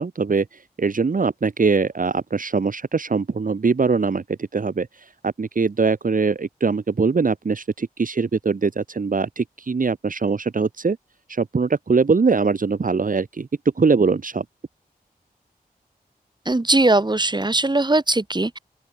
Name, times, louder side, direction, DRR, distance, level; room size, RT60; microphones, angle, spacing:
voice 1, 0.0-11.0 11.3-13.5 13.8-14.4, right 4 dB, 60° right, 2.1 m, -22 dB
voice 2, 16.5-18.6, right 2 dB, 25° right, 3.7 m, -20 dB
open air
cardioid pair, 55°, 16 cm